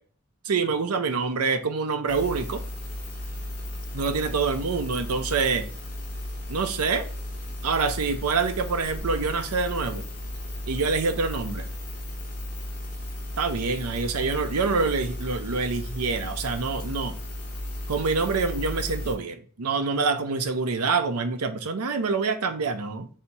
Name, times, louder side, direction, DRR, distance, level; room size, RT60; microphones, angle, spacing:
voice 1, 0.4-2.6 3.9-5.7 6.5-7.1 7.6-10.1 10.7-11.7 13.4-17.2 17.9-23.1, right 4 dB, 85° right, 0.6 m, -26 dB
sound 1, 2.1-19.1, left 1 dB, 35° left, 1.1 m, -35 dB
3.5 x 2.8 x 4.1 m
head